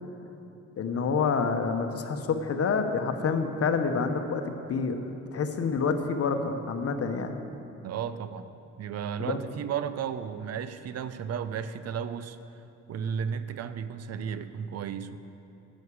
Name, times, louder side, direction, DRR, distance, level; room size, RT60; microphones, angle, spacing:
voice 1, 0.8-5.0 5.3-7.4 9.3-9.4, left 5 dB, 50° left, 7 dB, 1.0 m, -28 dB
voice 2, 7.8-8.5 8.8-12.4 12.9-15.2, right 7 dB, 55° right, 12 dB, 0.5 m, -34 dB
9.3 x 6.4 x 8.5 m, 2.8 s
cardioid pair, 90°, 30 cm